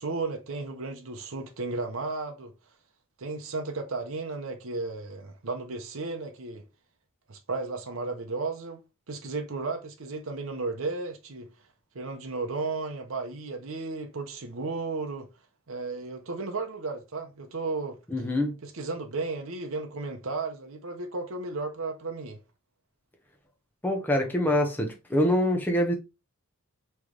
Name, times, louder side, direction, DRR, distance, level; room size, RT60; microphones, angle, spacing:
voice 1, 0.0-2.5 3.2-6.6 7.3-8.8 9.1-11.5 11.9-15.3 15.7-18.0 18.6-22.4, right 3 dB, 70° right, 0.7 m, -34 dB
voice 2, 18.1-18.5 23.8-25.9, left 1 dB, 10° left, 0.7 m, -25 dB
3.3 x 3.1 x 3.7 m
head